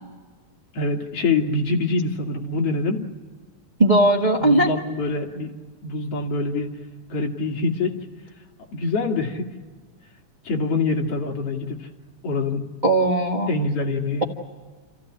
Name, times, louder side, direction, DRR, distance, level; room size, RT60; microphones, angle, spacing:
voice 1, 0.7-3.1 4.4-5.5 5.8-6.8 7.1-8.1 8.7-9.5 10.4-11.9 12.2-12.7 13.5-14.2, left 3 dB, 55° left, 1 dB, 3.1 m, -25 dB
voice 2, 3.8-4.7 12.8-13.5, right 1 dB, 25° right, 0 dB, 0.9 m, -18 dB
29.5 x 15.0 x 8.7 m, 1.5 s
omnidirectional pair, 3.4 m